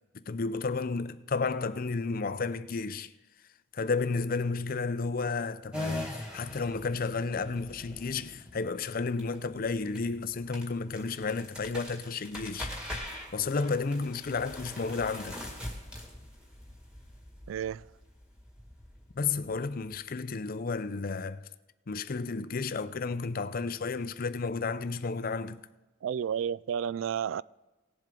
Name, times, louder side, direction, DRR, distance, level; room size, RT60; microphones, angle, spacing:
voice 1, 0.3-3.1 3.7-12.7 13.3-15.4 19.1-21.5 21.9-25.6, left 4 dB, 45° left, 0.5 m, -32 dB
sound 1, 5.7-19.9, left 1 dB, 5° right, 1.9 m, -42 dB
voice 2, 17.5-17.8 26.0-27.4, right 8 dB, 75° right, 0.3 m, -31 dB
18.5 x 7.5 x 3.8 m
head